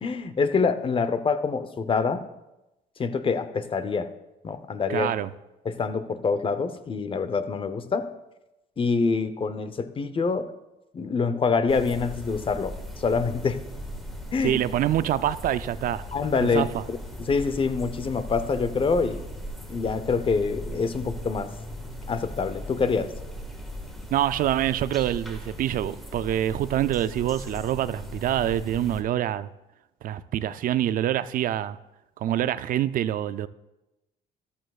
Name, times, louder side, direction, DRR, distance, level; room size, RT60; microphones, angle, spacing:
voice 1, 0.0-2.2 3.0-4.1 4.4-5.1 5.6-8.1 8.8-10.5 10.9-13.6 14.3-14.6 16.1-19.2 19.7-21.5 22.1-23.1, left 4 dB, 30° left, 11 dB, 0.8 m, -26 dB
voice 2, 4.9-5.3 14.4-16.0 16.5-16.7 24.1-29.5 30.0-31.8 32.2-33.5, right 12 dB, 55° right, 15 dB, 0.4 m, -26 dB
sound 1, 11.7-29.0, equal, ahead, 1.7 m, -38 dB
14.0 x 12.0 x 2.4 m, 0.97 s
cardioid pair, 110°, 17 cm